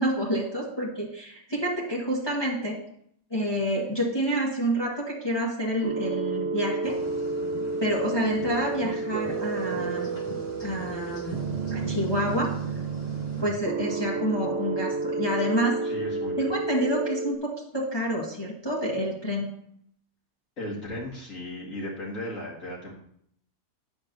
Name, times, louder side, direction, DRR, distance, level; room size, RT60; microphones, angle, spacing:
voice 1, 0.0-2.8 3.3-7.0 7.8-10.1 10.6-11.4 11.7-12.5 13.4-15.8 16.4-19.5, equal, 20° left, -4 dB, 1.4 m, -28 dB
sound 1, 5.8-17.3, right 4 dB, 65° right, 0.8 m, -31 dB
sound 2, 6.8-13.4, left 2 dB, 35° left, 0.8 m, -42 dB
voice 2, 15.8-16.6 20.6-22.9, left 1 dB, 60° left, -4 dB, 2.1 m, -36 dB
9.3 x 3.5 x 6.5 m, 0.67 s
omnidirectional pair, 1.5 m